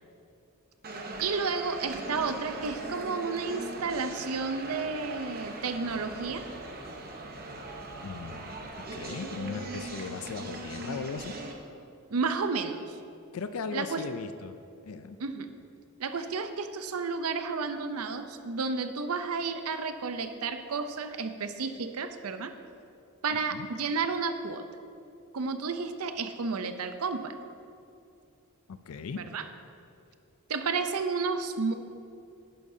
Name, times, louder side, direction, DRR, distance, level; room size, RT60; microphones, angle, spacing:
sound 1, 0.8-11.5, right 2 dB, 45° right, 1.0 m, -40 dB
voice 1, 1.2-6.4 12.1-13.0 13.7-14.0 15.2-15.5 16.0-22.5 23.2-24.6 25.3-27.3 29.2-29.4 30.5-31.7, right 4 dB, 80° right, 8 dB, 0.6 m, -31 dB
voice 2, 8.0-11.3 13.3-14.6 14.8-15.2 23.3-23.7 28.7-29.2, left 5 dB, 70° left, 10 dB, 0.4 m, -38 dB
11.0 x 10.5 x 2.7 m, 2.6 s
head